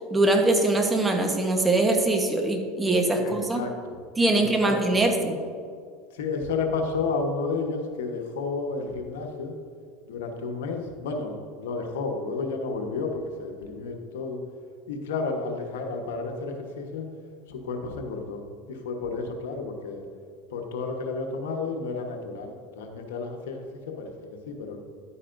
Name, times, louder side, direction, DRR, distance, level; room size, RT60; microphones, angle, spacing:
voice 1, 0.1-3.6 4.2-5.4, right 2 dB, 15° right, 4 dB, 1.1 m, -22 dB
voice 2, 3.1-4.0 4.3-5.0 6.1-9.5 10.1-14.4 14.9-17.1 17.5-18.4 18.7-20.1 20.5-24.8, left 4 dB, 85° left, 3 dB, 1.1 m, -32 dB
11.0 x 8.4 x 2.6 m, 2.2 s
supercardioid pair, 115°, 0 cm